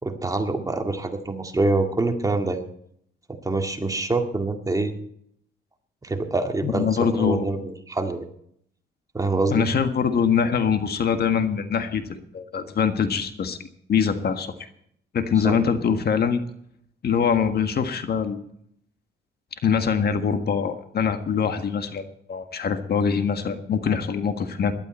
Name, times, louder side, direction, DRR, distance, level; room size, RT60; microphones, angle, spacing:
voice 1, 0.0-2.6 3.3-4.9 6.0-8.3 9.1-9.6 15.4-15.6, right 2 dB, 15° right, 4 dB, 2.0 m, -25 dB
voice 2, 6.6-7.4 9.5-13.6 13.9-14.5 15.1-16.4 17.0-18.4 19.6-24.7, left 6 dB, 55° left, 8 dB, 1.6 m, -23 dB
17.5 x 12.0 x 4.4 m, 0.68 s
cardioid pair, 90°, 20 cm